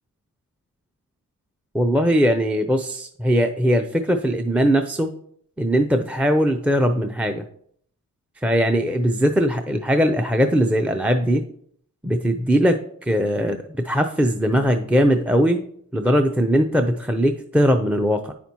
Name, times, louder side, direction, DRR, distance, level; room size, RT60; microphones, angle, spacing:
voice 1, 1.7-5.1 5.6-7.4 8.4-11.4 12.0-12.8 13.1-13.6 13.8-15.6 15.9-18.3, equal, 5° right, 6 dB, 0.5 m, -20 dB
8.9 x 5.8 x 2.9 m, 0.65 s
cardioid pair, 55°, 35 cm